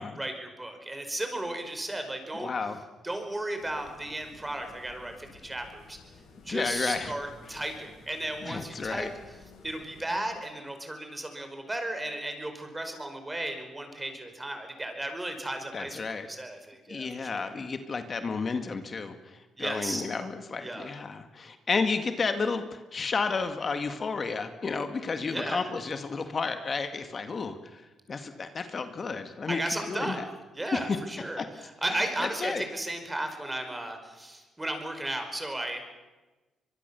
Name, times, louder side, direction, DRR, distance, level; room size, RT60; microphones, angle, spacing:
voice 1, 0.0-2.5 3.0-6.0 6.4-9.1 9.6-17.5 19.6-20.0 20.6-20.9 25.3-25.6 29.5-30.2 30.5-31.4 31.8-35.8, right 1 dB, 15° right, 6 dB, 5.1 m, -35 dB
voice 2, 2.3-2.8 6.5-7.1 8.4-9.1 15.7-16.3 16.9-29.6 29.9-30.3 30.7-31.0 31.4-31.5 31.9-32.7, left 4 dB, 40° left, 7 dB, 2.0 m, -32 dB
sound 1, 3.6-10.2, left 3 dB, 80° left, 7.8 m, -53 dB
23.5 x 22.5 x 7.0 m, 1.2 s
cardioid pair, 90°, 0 cm